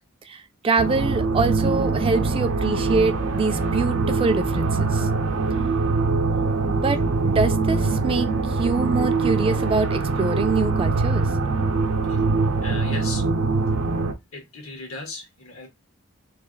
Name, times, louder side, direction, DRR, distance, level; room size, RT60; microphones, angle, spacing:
voice 1, 0.3-5.1 6.7-11.3, right 4 dB, 25° right, 0.3 m, -25 dB
sound 1, 0.8-14.1, right 3 dB, 80° right, 0.6 m, -23 dB
voice 2, 12.6-13.2 14.3-15.7, left 3 dB, 85° left, 1.6 m, -37 dB
3.2 x 2.4 x 3.7 m
head